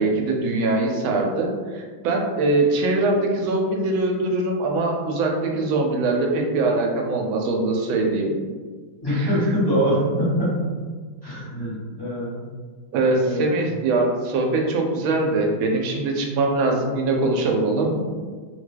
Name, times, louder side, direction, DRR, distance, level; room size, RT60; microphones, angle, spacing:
voice 1, 0.0-8.3 9.1-9.4 12.9-18.1, right 2 dB, 85° right, 1 dB, 1.4 m, -22 dB
voice 2, 9.0-10.6 11.2-12.5 13.2-13.4, equal, 15° left, -11 dB, 0.9 m, -23 dB
3.4 x 2.1 x 3.3 m, 1.5 s
omnidirectional pair, 2.2 m